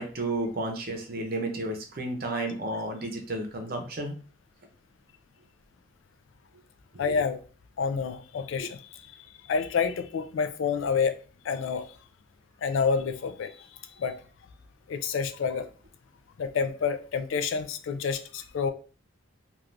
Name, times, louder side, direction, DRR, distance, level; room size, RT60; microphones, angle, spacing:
voice 1, 0.0-4.2 7.0-7.1, right 2 dB, 45° right, 0.6 m, -32 dB
voice 2, 7.0-7.4 7.8-9.0 9.5-11.2 11.4-11.9 12.6-13.6 14.0-14.2 14.9-15.7 16.4-18.7, left 5 dB, 70° left, 0.3 m, -28 dB
3.2 x 2.3 x 2.5 m
head